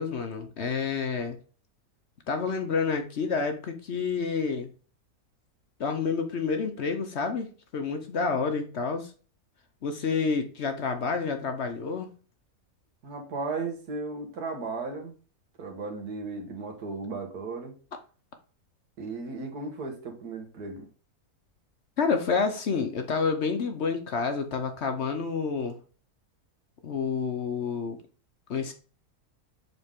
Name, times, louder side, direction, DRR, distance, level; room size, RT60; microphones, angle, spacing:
voice 1, 0.0-1.4 2.3-4.7 5.8-9.1 9.8-12.1 22.0-25.8 26.8-28.0 28.5-28.7, left 5 dB, 55° left, 0.9 m, -29 dB
voice 2, 13.0-15.2 15.6-17.7 19.0-20.9, right 3 dB, 80° right, 1.9 m, -35 dB
6.9 x 3.9 x 3.6 m
omnidirectional pair, 1.6 m